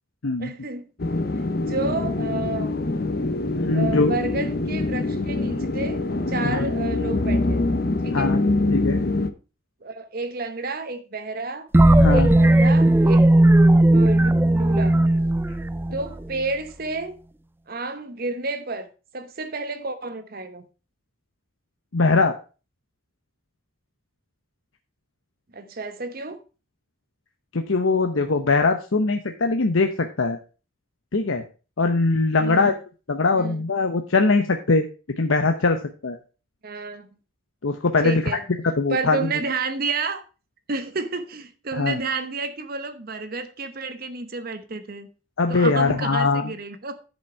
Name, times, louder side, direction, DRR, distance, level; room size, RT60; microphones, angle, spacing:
voice 1, 0.4-0.8 1.6-2.8 3.7-6.0 6.3-7.6 8.0-8.4 9.8-11.7 12.1-13.3 13.9-15.0 15.9-17.2 17.7-18.9 19.1-20.6 25.5-26.4 32.4-32.6 33.3-33.6 36.6-37.1 38.0-38.4 38.9-40.2 40.7-45.1 45.5-47.0, right 3 dB, 50° right, 0.9 m, -30 dB
sound 1, 1.0-9.3, left 2 dB, 50° left, 0.7 m, -24 dB
voice 2, 3.6-4.2 6.4-6.6 8.1-8.4 8.7-9.0 12.0-12.3 21.9-22.3 27.5-30.4 31.1-31.4 31.8-32.7 33.1-34.9 35.2-36.2 37.6-38.4 38.6-39.3 41.7-42.0 45.4-46.5, left 3 dB, 80° left, 0.9 m, -21 dB
sound 2, 11.7-16.4, right 1 dB, 10° right, 0.4 m, -16 dB
10.5 x 5.4 x 4.7 m
head